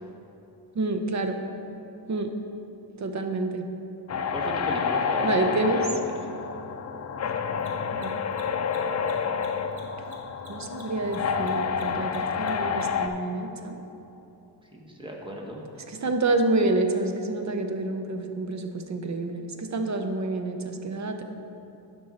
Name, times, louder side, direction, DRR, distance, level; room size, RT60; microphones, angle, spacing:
voice 1, 0.7-1.4 2.1-2.3 3.0-3.6 5.2-5.9 7.2-7.3 7.9-8.1 10.5-13.8 15.9-21.2, right 2 dB, 40° right, 6 dB, 0.8 m, -28 dB
sound 1, 4.1-13.1, left 6 dB, 40° left, 0.5 m, -29 dB
voice 2, 4.3-6.0 14.7-15.7, equal, 10° right, -1 dB, 1.5 m, -35 dB
Mechanisms, 4.4-4.5 7.5-13.1, right 4 dB, 65° right, 1.6 m, -52 dB
11.0 x 5.5 x 4.2 m, 2.9 s
cardioid pair, 80°, 43 cm